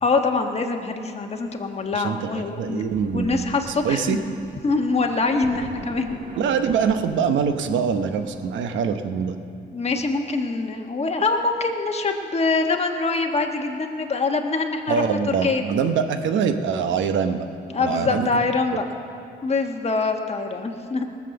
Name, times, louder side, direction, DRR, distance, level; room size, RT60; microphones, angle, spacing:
voice 1, 0.0-2.8 3.1-4.2 4.6-6.2 9.7-15.6 17.7-18.9 19.4-21.1, left 3 dB, 35° left, 3 dB, 1.3 m, -24 dB
voice 2, 1.9-4.2 6.4-9.4 14.9-17.5 17.8-18.3, right 6 dB, 80° right, 8 dB, 0.9 m, -24 dB
Thunder, 2.5-2.6 2.8-8.6, right 2 dB, 40° right, 1.8 m, -42 dB
18.5 x 7.4 x 7.0 m, 2.6 s
cardioid pair, 90°, 19 cm